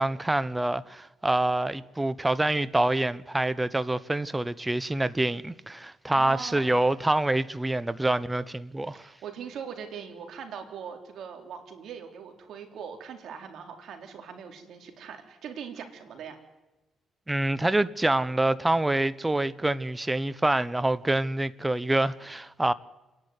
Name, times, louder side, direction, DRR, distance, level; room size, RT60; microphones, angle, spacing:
voice 1, 0.0-9.1 17.3-22.7, right 2 dB, 15° right, 0.9 m, -26 dB
voice 2, 6.1-6.8 9.0-16.4, right 7 dB, 70° right, 3.9 m, -41 dB
28.5 x 11.0 x 9.7 m
cardioid pair, 90°, 0 cm